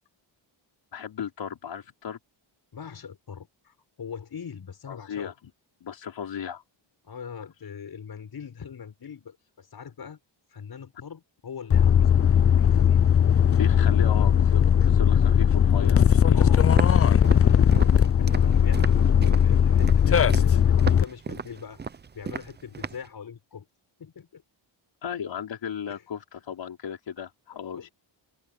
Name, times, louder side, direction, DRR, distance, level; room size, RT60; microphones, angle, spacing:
voice 1, 0.9-2.2 4.9-5.3 5.8-6.6 13.6-16.5 25.0-27.9, left 8 dB, 65° left, 4.5 m, -35 dB
voice 2, 2.7-5.3 7.0-10.2 10.5-13.1 16.3-16.7 17.2-21.8 22.1-23.7 24.0-24.4 25.9-26.0 27.5-27.9, left 7 dB, 50° left, 7.0 m, -41 dB
sound 1, 11.7-21.0, left 8 dB, 30° left, 0.5 m, -19 dB
Walk footsteps, 16.7-23.1, right 6 dB, 25° right, 0.5 m, -35 dB
wide cardioid pair, 150°, 47 cm